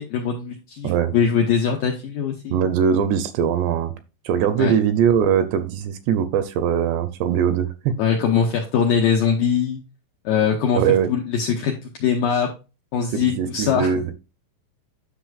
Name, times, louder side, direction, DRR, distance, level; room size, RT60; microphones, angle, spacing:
voice 1, 0.0-2.6 4.6-4.7 8.0-9.8 10.3-10.8 11.1-12.5 12.9-13.9, left 7 dB, 80° left, 1 dB, 2.0 m, -22 dB
voice 2, 0.8-1.1 2.5-3.9 4.3-7.9 10.8-11.1 13.1-14.1, right 8 dB, 80° right, 10 dB, 2.6 m, -21 dB
10.0 x 6.4 x 2.4 m, 0.30 s
omnidirectional pair, 5.2 m